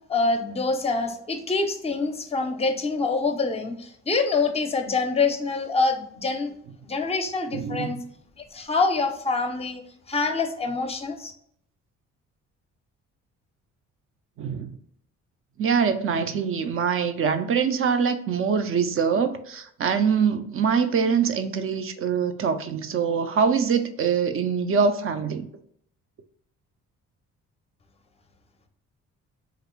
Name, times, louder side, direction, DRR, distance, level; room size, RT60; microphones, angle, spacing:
voice 1, 0.1-6.5 6.8-8.0 8.4-9.8 10.1-11.3, left 3 dB, 20° left, 0.5 m, -25 dB
voice 2, 7.5-8.0 14.4-14.8 15.6-25.5, right 6 dB, 45° right, 0.4 m, -24 dB
3.1 x 2.5 x 3.0 m
cardioid pair, 90°, 30 cm